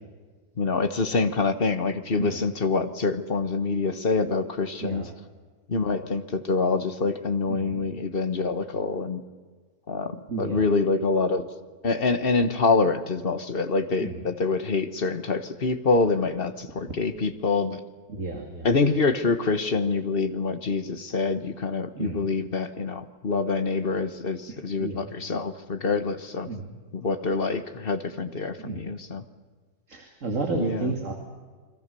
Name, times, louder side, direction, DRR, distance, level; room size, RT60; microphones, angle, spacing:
voice 1, 0.6-5.1 5.7-9.2 9.9-11.5 11.8-17.8 18.6-26.5 26.9-29.2 30.6-30.9, left 4 dB, 35° left, 10 dB, 1.3 m, -26 dB
voice 2, 7.5-7.9 10.3-10.7 14.0-14.2 18.1-18.7 22.0-22.2 24.5-25.0 26.5-26.7 28.6-28.8 29.9-31.1, right 3 dB, 40° right, 2 dB, 2.8 m, -32 dB
29.5 x 22.5 x 6.9 m, 1.5 s
omnidirectional pair, 2.1 m